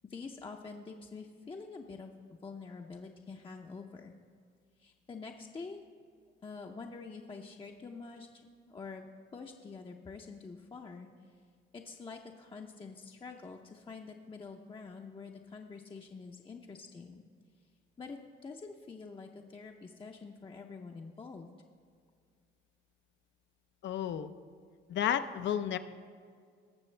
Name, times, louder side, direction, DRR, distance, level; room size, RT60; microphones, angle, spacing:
voice 1, 0.1-2.1 2.4-4.1 4.8-5.8 6.4-9.0 9.3-11.4 11.7-17.2 18.0-21.5, left 4 dB, 25° left, 2 dB, 0.6 m, -46 dB
voice 2, 23.8-24.3 24.9-25.8, left 9 dB, 65° left, 11 dB, 0.6 m, -32 dB
18.5 x 6.7 x 3.3 m, 2.1 s
cardioid pair, 90°, 20 cm